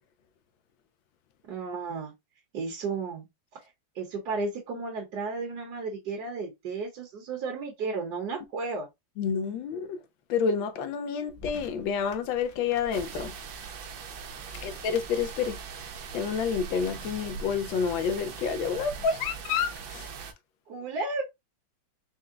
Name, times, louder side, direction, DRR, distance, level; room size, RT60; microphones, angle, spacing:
voice 1, 1.5-2.1 2.5-3.3 3.9-8.9 14.5-14.8 20.7-21.2, right 4 dB, 60° right, 1.5 m, -33 dB
voice 2, 9.2-10.0 10.3-13.3 14.6-15.6 16.1-20.1, left 6 dB, 85° left, 1.4 m, -29 dB
sound 1, 11.3-17.3, left 2 dB, 45° left, 0.9 m, -50 dB
sound 2, 12.9-20.3, right 6 dB, 90° right, 1.6 m, -41 dB
4.5 x 2.1 x 3.7 m
omnidirectional pair, 2.1 m